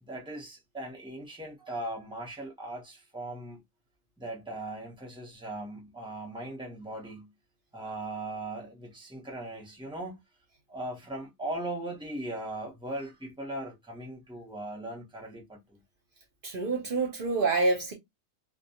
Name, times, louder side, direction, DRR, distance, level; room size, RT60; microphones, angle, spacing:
voice 1, 0.0-3.6 4.2-7.3 7.7-10.2 10.7-15.8, right 1 dB, 5° right, 0.5 m, -39 dB
voice 2, 16.4-17.9, right 3 dB, 55° right, 0.6 m, -27 dB
2.2 x 2.1 x 2.7 m
omnidirectional pair, 1.4 m